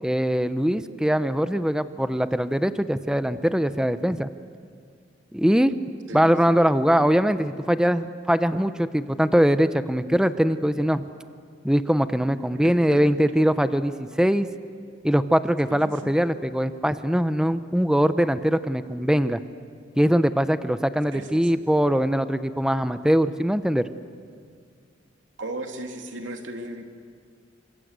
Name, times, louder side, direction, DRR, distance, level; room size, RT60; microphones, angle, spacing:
voice 1, 0.0-4.3 5.3-5.7 6.1-11.1 11.6-14.5 15.0-19.4 20.0-23.9, equal, 5° right, 11 dB, 0.7 m, -22 dB
voice 2, 6.1-6.6 12.5-13.2 15.7-16.2 21.1-21.6 25.4-26.8, right 1 dB, 80° right, 4 dB, 2.7 m, -36 dB
28.0 x 26.0 x 8.1 m, 2.2 s
head